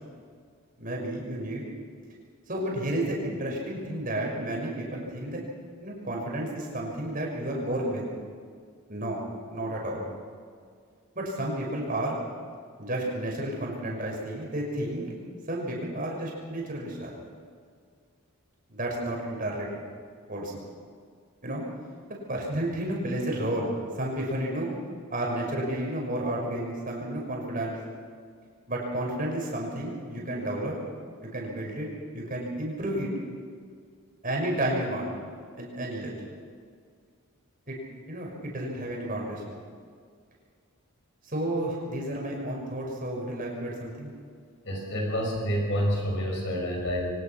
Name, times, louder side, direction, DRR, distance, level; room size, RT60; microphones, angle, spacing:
voice 1, 0.8-1.7 2.5-5.4 5.8-8.0 8.9-9.2 9.5-10.0 11.1-12.2 12.8-15.1 15.5-17.1 18.7-19.7 20.3-20.5 21.4-21.6 22.3-24.7 25.1-27.8 28.7-30.8 31.2-31.9 32.1-33.1 34.2-35.1 35.6-36.1 37.7-37.8 38.1-39.6 41.2-44.1, right 1 dB, 40° right, -1 dB, 5.9 m, -31 dB
voice 2, 44.6-47.1, equal, 55° left, 1 dB, 6.3 m, -28 dB
23.5 x 19.0 x 5.9 m, 2.1 s
head